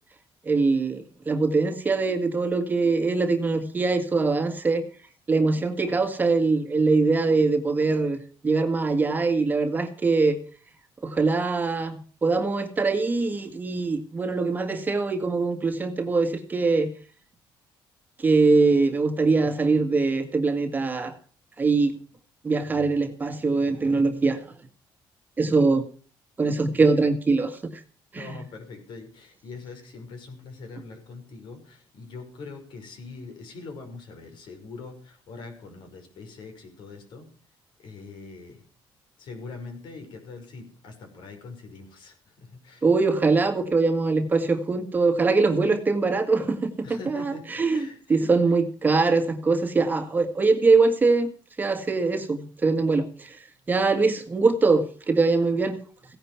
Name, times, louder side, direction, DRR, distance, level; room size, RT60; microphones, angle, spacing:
voice 1, 0.5-4.9 5.3-8.2 8.4-10.4 11.0-16.9 18.2-21.1 21.6-21.9 22.4-24.4 25.4-25.8 26.4-27.8 28.1-28.4 42.8-51.3 51.6-53.4 53.7-55.8, right 3 dB, 20° right, 6 dB, 1.8 m, -23 dB
voice 2, 28.2-37.3 37.8-38.6 39.2-42.9 46.8-48.3, left 4 dB, 65° left, 5 dB, 5.8 m, -43 dB
16.5 x 10.5 x 5.7 m, 0.42 s
cardioid pair, 160°, 9 cm